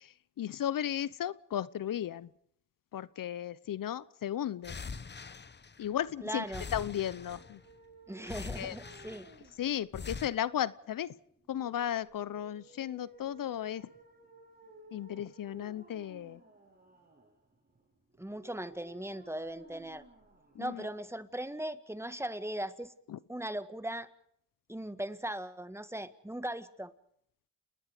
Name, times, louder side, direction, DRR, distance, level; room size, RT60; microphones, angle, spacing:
voice 1, 0.0-2.3 2.9-4.8 5.8-6.4 6.7-7.6 8.6-8.8 9.6-11.1 11.5-13.9 14.9-16.4 20.5-20.9 23.1-23.2, left 10 dB, 75° left, 19 dB, 0.9 m, -35 dB
sound 1, 4.6-6.1 6.4-7.7 8.2-9.5 9.9-10.3, left 5 dB, 30° left, 1.1 m, -43 dB
voice 2, 6.2-6.6 8.1-9.3 18.2-20.0 20.6-22.9 23.3-24.1 24.7-26.9, right 1 dB, 10° right, 12 dB, 1.7 m, -39 dB
sound 2, 6.4-21.3, right 2 dB, 25° right, 7.8 m, -58 dB
30.0 x 19.5 x 5.1 m, 0.68 s
cardioid pair, 85°, 34 cm